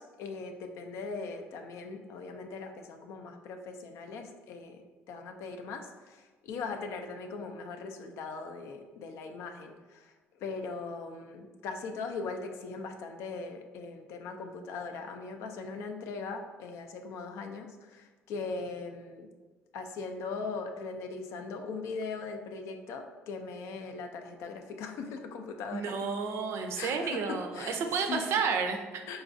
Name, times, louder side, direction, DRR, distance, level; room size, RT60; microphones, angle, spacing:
voice 1, 0.0-19.3 19.7-25.9 26.8-27.8 28.1-28.3 29.1-29.2, left 4 dB, 75° left, 5 dB, 0.4 m, -40 dB
voice 2, 25.7-29.0, right 5 dB, 65° right, 5 dB, 0.4 m, -31 dB
3.9 x 2.4 x 2.5 m, 1.3 s
supercardioid pair, 80°, 5 cm